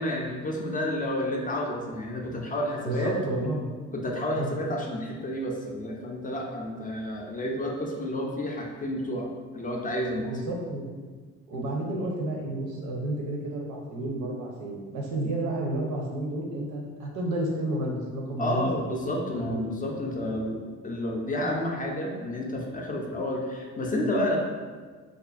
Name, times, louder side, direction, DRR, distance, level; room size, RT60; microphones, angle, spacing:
voice 1, 0.0-3.2 3.9-9.3 9.5-10.6 11.5-11.7 18.4-24.4, left 1 dB, 30° left, 0 dB, 0.4 m, -30 dB
voice 2, 2.8-3.6 4.3-4.5 10.2-10.9 11.5-18.9 19.5-19.6, right 1 dB, 85° right, 0 dB, 0.6 m, -31 dB
2.5 x 2.4 x 2.4 m, 1.5 s
cardioid pair, 90°, 30 cm